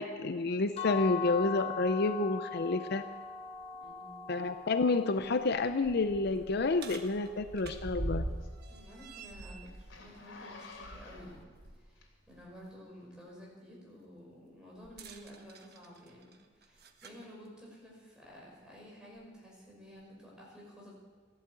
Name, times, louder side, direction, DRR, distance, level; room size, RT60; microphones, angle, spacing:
voice 1, 0.0-3.0 4.3-8.2, left 3 dB, 55° left, 10 dB, 0.6 m, -29 dB
sound 1, 0.8-6.6, left 7 dB, 30° left, 1.3 m, -41 dB
voice 2, 3.8-4.3 8.7-11.4 11.7-20.9, equal, 5° right, -4 dB, 5.8 m, -52 dB
sound 2, 3.8-3.9 4.4-4.5 5.1-11.8 12.2-12.4 14.8-17.3 18.2-18.3 19.2-19.3, right 1 dB, 55° right, 1.3 m, -44 dB
Zipper (clothing), 7.6-12.5 13.1-13.2, left 3 dB, 85° left, 2.9 m, -52 dB
15.0 x 11.5 x 8.3 m, 1.5 s
head